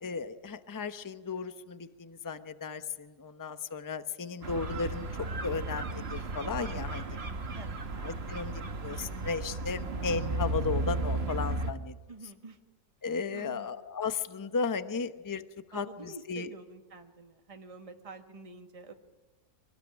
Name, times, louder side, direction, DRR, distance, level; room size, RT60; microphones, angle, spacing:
voice 1, 0.0-5.1 5.4-7.2 8.0-12.0 13.0-15.4 15.7-16.5, left 5 dB, 15° left, 10 dB, 0.7 m, -35 dB
sound 1, 4.4-11.7, right 2 dB, 40° right, 1.5 m, -34 dB
voice 2, 12.1-12.6 13.3-13.7 15.7-18.9, right 3 dB, 20° right, 5 dB, 1.5 m, -48 dB
25.0 x 19.0 x 9.9 m, 1.2 s
omnidirectional pair, 1.7 m